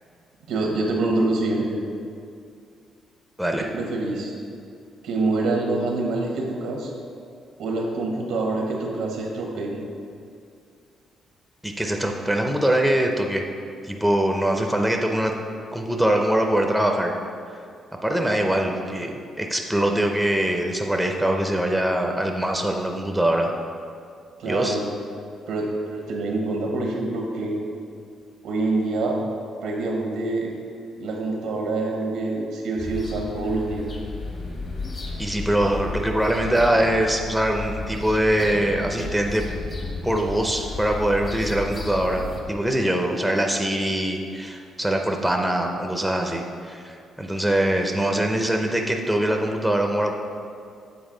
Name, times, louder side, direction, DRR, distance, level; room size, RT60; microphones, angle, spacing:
voice 1, 0.5-1.8 3.7-4.3 5.0-6.9 7.6-9.8 24.4-24.8 25.5-27.6 28.4-29.2 29.6-30.5 31.0-33.9, right 2 dB, 85° right, 0 dB, 1.1 m, -26 dB
voice 2, 11.6-13.4 13.8-15.3 15.7-17.1 18.0-23.5 24.5-24.8 35.2-39.4 40.0-50.1, right 1 dB, 5° right, 2 dB, 0.5 m, -23 dB
sound 1, 32.8-42.4, left 3 dB, 40° left, 1.0 m, -33 dB
7.2 x 4.2 x 3.8 m, 2.3 s
cardioid pair, 90°, 0 cm